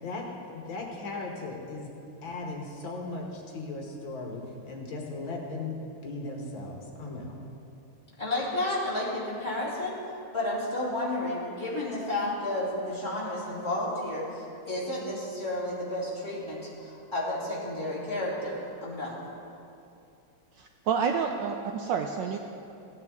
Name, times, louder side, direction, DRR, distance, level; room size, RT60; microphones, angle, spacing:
voice 1, 0.0-1.9 2.2-5.7 6.0-7.4, left 3 dB, 65° left, 0 dB, 1.9 m, -37 dB
voice 2, 8.2-10.0 10.3-19.2, left 1 dB, 10° left, -8 dB, 2.7 m, -32 dB
voice 3, 20.6-22.4, right 6 dB, 75° right, 4 dB, 1.1 m, -29 dB
16.5 x 9.5 x 3.5 m, 2.7 s
omnidirectional pair, 2.4 m